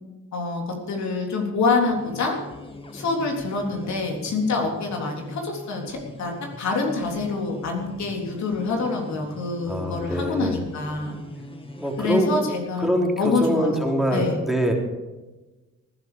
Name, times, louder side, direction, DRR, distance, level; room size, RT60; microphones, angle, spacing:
voice 1, 0.3-2.4 2.9-11.2 12.0-12.9 13.2-14.4, left 3 dB, 65° left, 1 dB, 3.6 m, -26 dB
sound 1, 1.7-12.7, left 1 dB, 15° left, 1.9 m, -41 dB
voice 2, 9.7-10.6 11.8-12.4 12.8-14.7, equal, ahead, 0 dB, 3.3 m, -24 dB
19.5 x 11.0 x 5.2 m, 1.1 s
cardioid pair, 90°, 30 cm